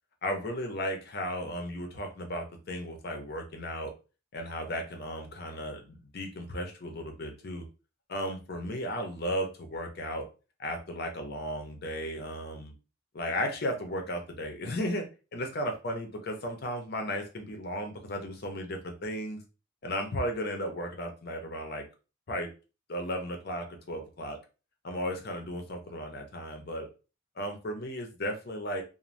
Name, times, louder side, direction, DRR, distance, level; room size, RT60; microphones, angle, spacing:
voice 1, 0.2-3.9 4.3-7.6 8.1-10.2 10.6-12.7 13.1-15.0 15.3-19.4 19.8-21.8 22.3-22.5 22.9-24.4 24.8-26.9 27.4-28.8, equal, 50° left, 4 dB, 0.6 m, -35 dB
2.5 x 2.1 x 3.1 m, 0.33 s
head